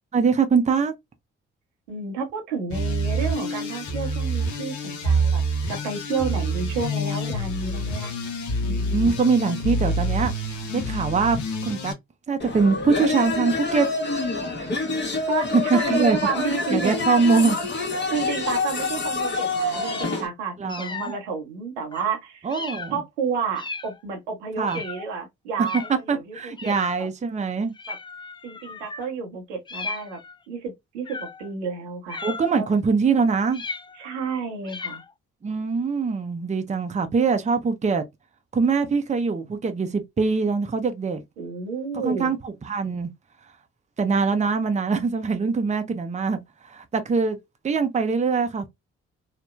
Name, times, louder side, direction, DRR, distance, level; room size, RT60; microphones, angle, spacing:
voice 1, 0.1-0.9 8.6-11.9 12.3-13.9 15.5-17.6 20.6-21.1 22.4-23.0 24.6-24.8 26.1-27.7 32.2-33.6 35.4-38.0 38.5-41.2 41.9-43.1 44.0-47.4 47.6-48.7, right 4 dB, 20° right, 0.6 m, -23 dB
voice 2, 1.9-5.4 5.7-8.2 14.6-14.7 15.3-17.0 18.1-22.5 22.9-27.1 27.9-28.0 28.4-30.2 30.5-32.2 32.5-32.7 34.0-35.0 41.4-42.3, right 5 dB, 85° right, 0.8 m, -31 dB
sound 1, 2.7-11.9, right 1 dB, 60° left, 0.8 m, -27 dB
sound 2, 12.4-20.3, left 3 dB, 35° left, 1.0 m, -27 dB
sound 3, 19.2-20.2 20.7-21.2 21.9-22.1 22.5-23.0 23.6-24.0 24.7-25.1 25.6-26.0 26.6-27.1 27.7-29.1 29.7-30.4 31.1-31.5 32.1-32.7 33.5-34.2 34.6-35.1, left 4 dB, 15° left, 0.3 m, -36 dB
3.0 x 2.1 x 2.3 m
hypercardioid pair, 45°, 33 cm